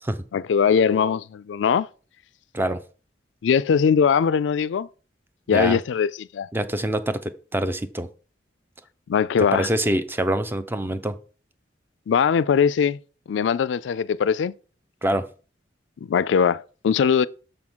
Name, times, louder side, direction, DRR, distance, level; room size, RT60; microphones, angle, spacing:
voice 1, 0.3-1.9 3.4-4.9 5.5-6.5 9.1-9.7 12.1-13.0 13.3-14.5 16.0-17.3, left 6 dB, 80° left, 0.3 m, -21 dB
voice 2, 6.5-8.1 9.4-11.2 15.0-15.3, right 1 dB, 10° right, 0.5 m, -25 dB
6.7 x 3.6 x 6.0 m
head